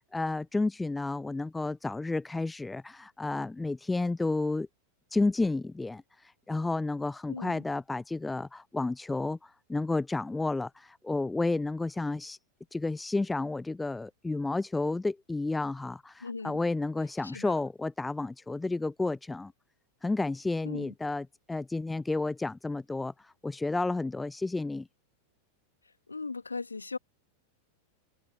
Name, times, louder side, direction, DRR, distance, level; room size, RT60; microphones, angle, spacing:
voice 1, 0.0-4.7 5.1-12.4 12.7-19.5 20.0-24.9, left 3 dB, 10° left, 0.4 m, -31 dB
voice 2, 7.3-7.6 16.2-16.6 17.2-17.5 20.6-20.9 26.1-27.0, left 4 dB, 80° left, 1.4 m, -38 dB
open air
figure-of-eight pair, 90°, 0 cm